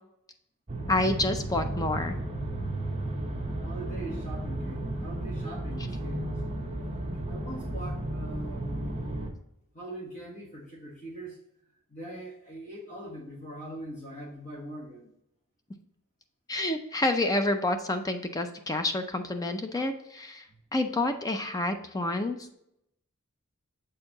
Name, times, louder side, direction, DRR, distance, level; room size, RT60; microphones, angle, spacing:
sound 1, 0.7-9.3, right 1 dB, 30° right, 0.9 m, -33 dB
voice 1, 0.9-2.2 16.5-20.5 20.7-22.5, left 2 dB, 15° left, 7 dB, 0.4 m, -28 dB
voice 2, 3.6-6.4 7.3-8.9 9.7-11.4 11.9-15.1, right 1 dB, 35° left, -3 dB, 1.4 m, -42 dB
7.4 x 4.4 x 2.9 m, 0.78 s
head